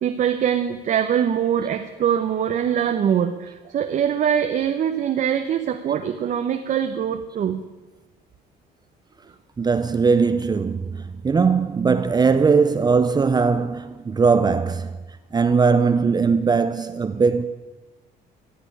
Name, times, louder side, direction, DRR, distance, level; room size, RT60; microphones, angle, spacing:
voice 1, 0.0-7.6, right 9 dB, 50° right, 0.9 m, -23 dB
voice 2, 9.6-14.9 15.3-17.5, right 5 dB, 25° right, 0.6 m, -19 dB
15.5 x 7.0 x 9.8 m
cardioid pair, 110°, 17 cm